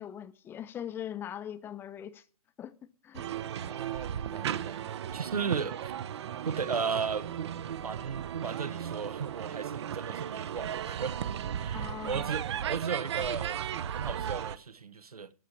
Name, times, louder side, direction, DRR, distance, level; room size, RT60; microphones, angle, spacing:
voice 1, 0.0-2.2 2.6-2.7 3.0-3.3 11.7-12.3, left 10 dB, 10° left, 0.6 m, -40 dB
sound 1, 3.1-14.6, right 9 dB, 45° right, 0.6 m, -36 dB
voice 2, 3.5-5.9 6.4-11.2 11.6-15.3, right 6 dB, 75° right, 0.9 m, -36 dB
14.0 x 5.0 x 8.7 m
figure-of-eight pair, 120°, 19 cm